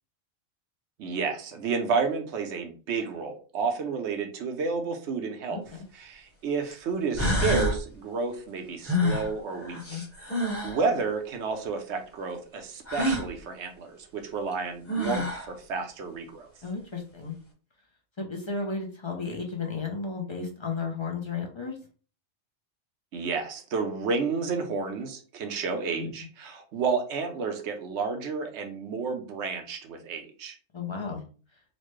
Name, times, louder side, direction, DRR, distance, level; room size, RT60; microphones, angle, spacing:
voice 1, 1.0-5.6 5.9-9.8 10.6-16.5 23.1-30.5, right 5 dB, 75° right, 5 dB, 1.0 m, -31 dB
voice 2, 5.5-5.8 9.9-10.0 16.6-17.3 18.2-21.8 26.0-26.1 30.7-31.2, left 4 dB, 35° left, 1 dB, 0.5 m, -33 dB
sound 1, 5.7-5.8 6.7-6.8 7.2-7.8 8.9-10.8 12.9-13.3 14.5-14.6 14.9-15.5, left 1 dB, 15° left, 0.9 m, -27 dB
4.1 x 2.1 x 3.1 m, 0.39 s
omnidirectional pair, 1.2 m